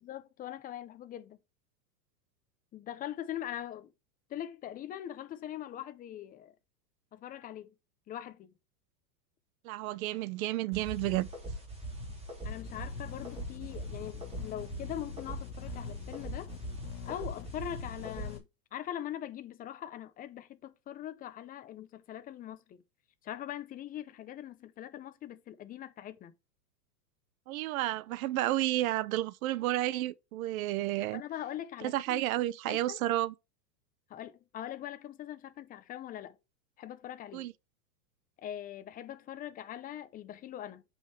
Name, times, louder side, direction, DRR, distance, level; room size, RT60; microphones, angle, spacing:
voice 1, 0.0-1.4 2.7-3.9 4.3-6.5 7.1-7.7 8.1-8.5 12.4-16.5 17.0-18.4 18.7-22.8 23.2-26.3 31.1-32.3 32.7-33.0 34.1-36.4 36.8-37.5 38.4-40.8, left 11 dB, 20° left, 0.6 m, -42 dB
voice 2, 9.6-11.3 27.5-31.2 31.8-33.3 37.3-37.5, right 15 dB, 55° right, 0.8 m, -31 dB
sound 1, 10.7-18.4, right 1 dB, 10° right, 3.4 m, -41 dB
sound 2, 12.5-18.4, left 17 dB, 80° left, 0.7 m, -46 dB
8.4 x 5.5 x 3.3 m
supercardioid pair, 140°, 49 cm